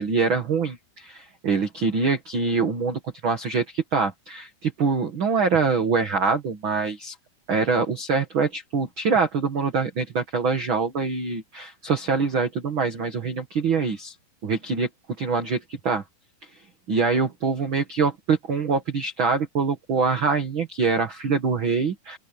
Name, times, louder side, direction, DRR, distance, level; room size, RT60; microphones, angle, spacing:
voice 1, 0.0-7.1 7.5-14.1 14.4-14.9 15.2-16.0 16.9-22.2, right 5 dB, 45° right, 1.7 m, -24 dB
open air
omnidirectional pair, 4.9 m